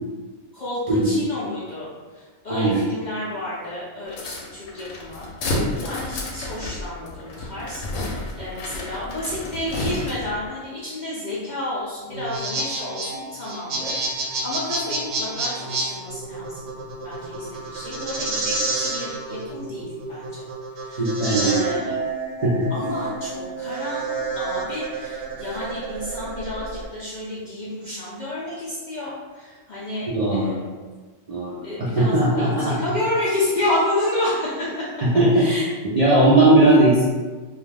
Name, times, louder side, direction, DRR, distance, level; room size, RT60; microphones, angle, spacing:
voice 1, 0.5-20.4 20.8-21.9 22.7-30.6 31.6-34.9 35.3-35.6, left 1 dB, 55° left, -8 dB, 0.5 m, -30 dB
voice 2, 2.5-2.8 21.0-21.8 22.4-22.6 30.1-30.6 31.3-32.7 35.0-35.5 35.8-37.0, right 1 dB, 50° right, -8 dB, 0.4 m, -18 dB
sound 1, 4.1-10.4, left 1 dB, 90° left, 0.9 m, -31 dB
sound 2, 12.1-26.9, right 3 dB, 70° right, 0.8 m, -29 dB
2.3 x 2.3 x 3.2 m, 1.4 s
omnidirectional pair, 1.2 m